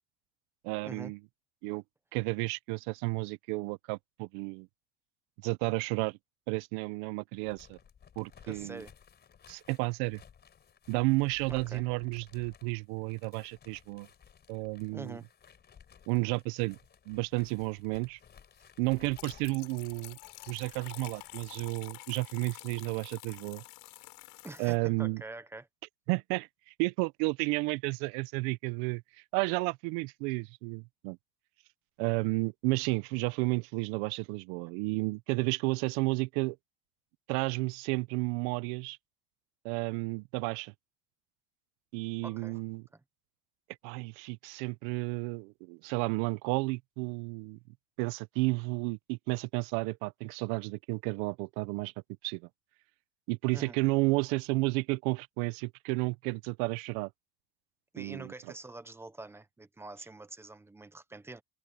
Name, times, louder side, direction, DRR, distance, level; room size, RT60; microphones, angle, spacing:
voice 1, 0.6-1.2 1.6-1.8 2.1-4.7 5.4-6.2 6.5-7.8 8.2-8.8 9.5-10.2 10.9-14.1 14.5-15.2 16.1-16.8 17.1-18.2 18.8-20.2 20.5-23.6 24.6-25.2 26.1-29.0 29.3-31.2 32.0-36.6 37.3-39.0 39.6-40.7 41.9-42.8 43.8-47.6 48.0-51.9 52.2-52.4 53.3-57.1 58.0-58.3, right 25 dB, 75° right, 0.7 m, -32 dB
sound 1, 7.4-21.5, left 8 dB, 25° left, 4.4 m, -58 dB
voice 2, 8.4-8.9 11.5-11.8 14.9-15.2 24.4-25.7 42.2-42.6 42.9-43.0 53.5-53.8 57.9-61.4, right 2 dB, 5° right, 0.5 m, -45 dB
sound 2, 18.9-24.8, left 26 dB, 70° left, 4.0 m, -49 dB
open air
cardioid pair, 180°, 42 cm